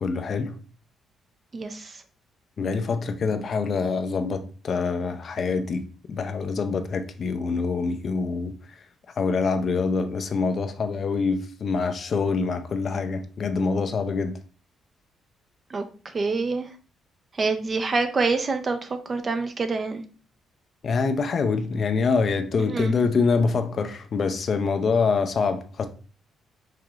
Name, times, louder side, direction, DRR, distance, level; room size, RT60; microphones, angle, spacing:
voice 1, 0.0-0.5 2.6-8.5 9.2-14.3 20.8-25.9, left 4 dB, 50° left, 0.5 m, -25 dB
voice 2, 1.5-2.0 15.7-16.7 17.4-20.0 22.7-22.9, right 4 dB, 40° right, 0.5 m, -26 dB
4.9 x 2.8 x 2.4 m
cardioid pair, 90°, 0 cm